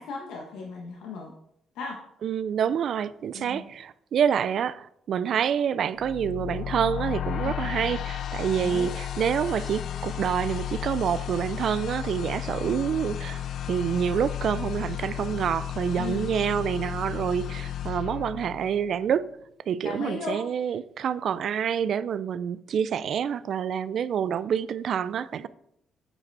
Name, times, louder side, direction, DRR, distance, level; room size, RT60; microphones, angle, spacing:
voice 1, 0.0-1.3 1.7-2.0 3.3-3.6 7.4-7.7 8.6-8.9 16.0-16.3 19.8-20.4 25.4-25.5, left 4 dB, 85° left, 1.2 m, -36 dB
voice 2, 2.2-13.4 13.7-19.3 19.7-25.5, right 8 dB, 65° right, 0.4 m, -27 dB
sound 1, 6.0-19.1, left 11 dB, 65° left, 0.5 m, -33 dB
8.6 x 5.0 x 4.7 m
cardioid pair, 90°, 0 cm